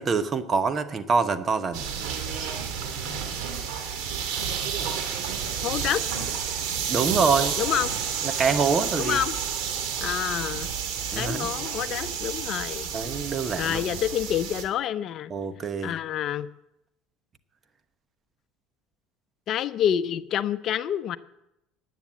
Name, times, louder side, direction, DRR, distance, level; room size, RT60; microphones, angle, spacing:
voice 1, 0.0-1.8 6.9-7.6 8.2-9.2 11.1-11.5 12.9-13.8 15.3-15.9, right 5 dB, 30° right, 11 dB, 1.1 m, -25 dB
sound 1, 1.7-14.6, right 7 dB, 75° right, 2.2 m, -30 dB
voice 2, 5.6-6.0 7.6-7.9 8.9-9.3 10.0-10.7 11.1-12.9 13.6-15.3 15.8-16.5 19.5-21.2, left 10 dB, 50° left, 12 dB, 0.7 m, -28 dB
10.5 x 9.5 x 8.8 m, 0.84 s
supercardioid pair, 105°, 0 cm